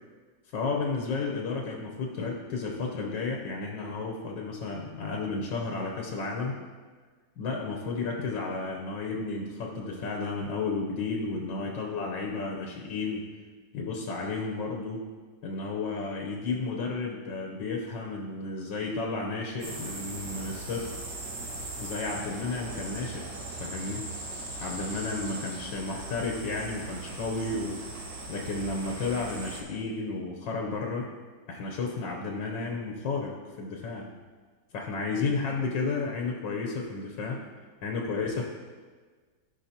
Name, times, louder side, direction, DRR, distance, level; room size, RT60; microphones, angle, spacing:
voice 1, 0.5-6.5 7.4-13.3 13.7-15.0 15.4-21.0 21.8-23.3 23.6-24.0 24.6-27.8 28.3-31.1 31.5-34.2 34.7-37.4 37.8-38.4, left 3 dB, 90° left, 1 dB, 1.6 m, -32 dB
sound 1, 19.6-29.6, right 2 dB, 65° right, 2.1 m, -39 dB
15.5 x 5.9 x 2.9 m, 1.5 s
omnidirectional pair, 1.9 m